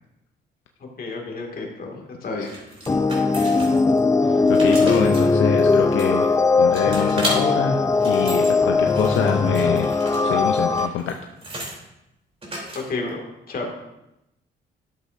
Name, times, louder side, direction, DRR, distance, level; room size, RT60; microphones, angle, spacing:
voice 1, 1.0-2.5 12.7-13.7, left 3 dB, 50° left, 1 dB, 2.1 m, -31 dB
sound 1, 2.4-4.0 4.4-6.4 6.7-7.4 7.8-8.5 8.9-11.8 12.4-13.1, right 1 dB, 30° right, 3.2 m, -34 dB
sound 2, 2.9-10.9, left 3 dB, 15° left, 0.5 m, -19 dB
voice 2, 4.2-6.3 6.6-11.2, left 8 dB, 80° left, 4 dB, 0.6 m, -26 dB
12.0 x 7.4 x 2.6 m, 0.90 s
cardioid pair, 90°, 20 cm